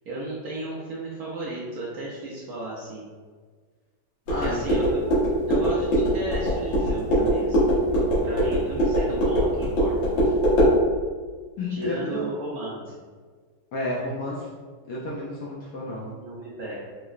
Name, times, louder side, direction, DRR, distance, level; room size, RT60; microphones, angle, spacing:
voice 1, 0.1-3.0 4.4-5.0 5.5-7.7 8.2-10.0 10.2-10.3 11.7-13.1 16.2-16.8, right 2 dB, 65° right, -6 dB, 1.0 m, -35 dB
sound 1, 4.3-10.8, equal, 90° left, 1.8 m, -22 dB
voice 2, 4.3-4.6 11.6-12.2 13.7-14.5 14.9-16.0, left 1 dB, 70° left, -5 dB, 1.0 m, -31 dB
4.7 x 2.0 x 2.4 m, 1.5 s
omnidirectional pair, 2.1 m